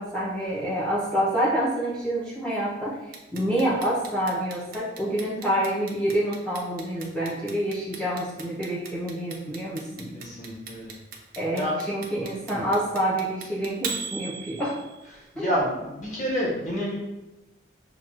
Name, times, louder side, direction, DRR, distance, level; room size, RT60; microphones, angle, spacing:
voice 1, 0.0-10.1 11.4-14.8 15.4-15.5, right 1 dB, 5° left, -7 dB, 0.5 m, -27 dB
Clock, 3.1-15.1, right 5 dB, 50° right, 0.5 m, -37 dB
voice 2, 10.1-10.9 11.5-11.7 12.5-12.6 15.1-17.0, equal, 40° left, -5 dB, 1.1 m, -29 dB
5.8 x 2.3 x 2.4 m, 1.0 s
head